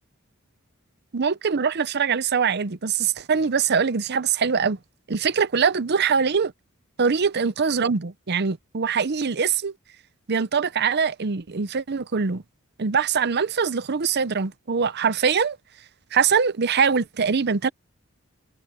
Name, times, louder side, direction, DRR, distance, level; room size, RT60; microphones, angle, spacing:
voice 1, 1.1-4.8 5.1-6.5 7.0-9.7 10.3-12.4 12.8-15.6 16.1-17.7, right 6 dB, 50° right, 0.7 m, -23 dB
head